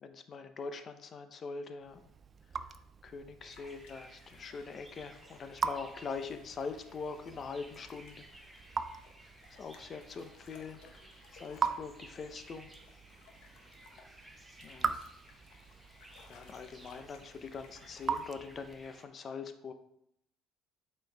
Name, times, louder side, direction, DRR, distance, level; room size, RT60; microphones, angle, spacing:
voice 1, 0.0-2.0 3.0-8.2 9.5-11.0 11.3-12.7 14.6-14.9 16.3-19.7, left 5 dB, 35° left, 9 dB, 0.6 m, -43 dB
Raindrop / Drip, 1.8-19.0, right 5 dB, 30° right, 0.4 m, -42 dB
sound 1, 3.4-19.1, right 1 dB, 5° right, 0.9 m, -58 dB
sound 2, 3.5-18.3, left 5 dB, 65° left, 1.1 m, -61 dB
7.9 x 4.5 x 3.4 m, 0.75 s
cardioid pair, 135°, 0 cm